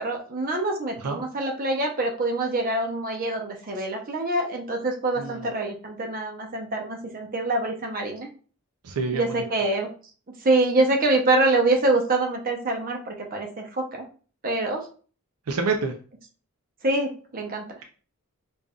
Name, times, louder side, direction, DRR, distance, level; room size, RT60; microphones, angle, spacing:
voice 1, 0.0-8.3 9.1-9.9 10.4-14.0 14.4-14.8 16.8-17.6, right 2 dB, 40° right, 2 dB, 0.7 m, -25 dB
voice 2, 5.2-5.5 8.8-9.5 15.5-15.9, right 4 dB, 80° right, 3 dB, 0.5 m, -27 dB
5.1 x 2.5 x 2.3 m, 0.40 s
head